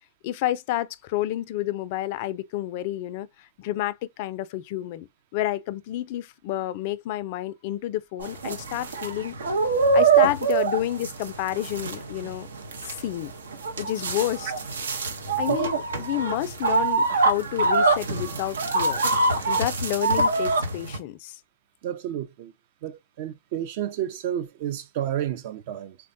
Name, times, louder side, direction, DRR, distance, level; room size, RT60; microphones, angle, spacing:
voice 1, 0.2-9.4 9.9-12.5 12.8-13.3 13.8-14.5 15.4-19.0 19.5-21.4, left 14 dB, 50° left, 0.3 m, -30 dB
sound 1, 8.2-21.0, right 4 dB, 90° right, 0.7 m, -24 dB
voice 2, 21.8-22.5 22.8-26.0, right 10 dB, 50° right, 0.5 m, -31 dB
3.4 x 2.2 x 2.5 m
hypercardioid pair, 135°, 0 cm